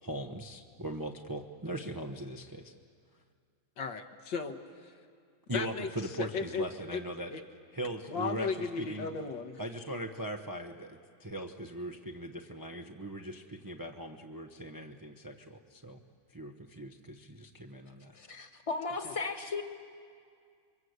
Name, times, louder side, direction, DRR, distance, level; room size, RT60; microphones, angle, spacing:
voice 1, 0.0-2.7 5.5-7.3 7.7-9.1 9.6-16.0 16.3-18.1, right 1 dB, 25° right, 2 dB, 0.4 m, -40 dB
voice 2, 3.8-4.9 5.5-6.7 6.9-7.0 7.3-7.4 8.1-9.6 19.0-19.1, left 5 dB, 70° left, 5 dB, 1.9 m, -36 dB
voice 3, 18.1-19.6, left 4 dB, 20° left, 6 dB, 1.3 m, -36 dB
28.5 x 23.0 x 8.1 m, 2.2 s
omnidirectional pair, 2.1 m